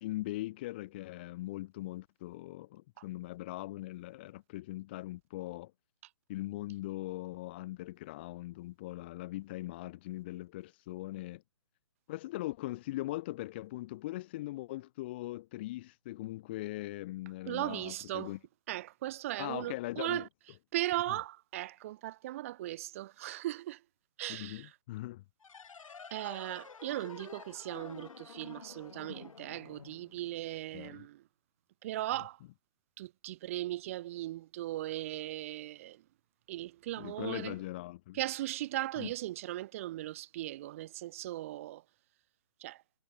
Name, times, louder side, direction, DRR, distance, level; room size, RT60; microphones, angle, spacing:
voice 1, 0.0-5.7 6.3-11.4 12.1-18.4 19.4-20.3 24.3-25.2 30.7-31.1 37.0-38.2 39.0-39.1, left 17 dB, 20° left, 0.5 m, -40 dB
voice 2, 17.5-18.3 18.7-20.3 20.7-23.8 24.2-24.7 26.1-31.2 31.8-32.4 33.0-36.0 36.5-37.6 38.1-41.8 42.6-42.8, right 15 dB, 25° right, 0.7 m, -38 dB
sound 1, 25.4-30.7, left 5 dB, 70° left, 5.4 m, -50 dB
hypercardioid pair, 160°, 17 cm